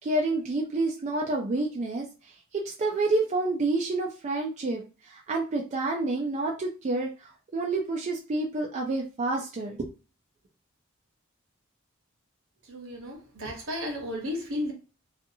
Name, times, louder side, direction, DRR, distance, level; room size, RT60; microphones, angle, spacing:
voice 1, 0.0-2.1 2.5-4.8 5.1-9.8, right 2 dB, 35° right, 0.4 m, -28 dB
voice 2, 12.7-14.7, left 1 dB, 65° right, 1.0 m, -33 dB
2.6 x 2.4 x 2.6 m
head